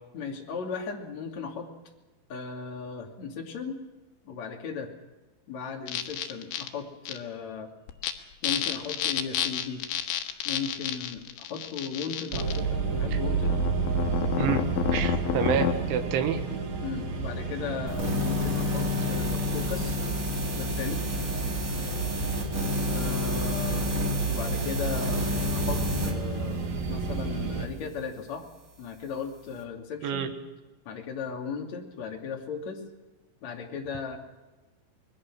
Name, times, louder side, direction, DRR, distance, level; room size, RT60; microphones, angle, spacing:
voice 1, 0.1-1.7 2.3-3.8 4.2-4.9 5.5-7.7 8.2-9.9 10.4-13.6 16.8-20.0 20.6-21.0 22.9-23.8 24.3-28.4 28.8-30.3 30.8-32.8 33.4-34.2, left 6 dB, 45° left, 1 dB, 3.4 m, -36 dB
sound 1, 5.9-6.7 7.1-7.2 7.9-8.1 8.4-12.6 13.4-15.7, left 11 dB, 85° left, 3.8 m, -30 dB
sound 2, 12.3-27.7, right 4 dB, 55° right, 4.2 m, -31 dB
voice 2, 14.9-16.4 30.0-30.3, right 8 dB, 80° right, 6 dB, 4.0 m, -28 dB
sound 3, 17.9-26.1, left 2 dB, 25° right, 2.3 m, -30 dB
26.0 x 21.0 x 6.2 m, 1.2 s
omnidirectional pair, 5.3 m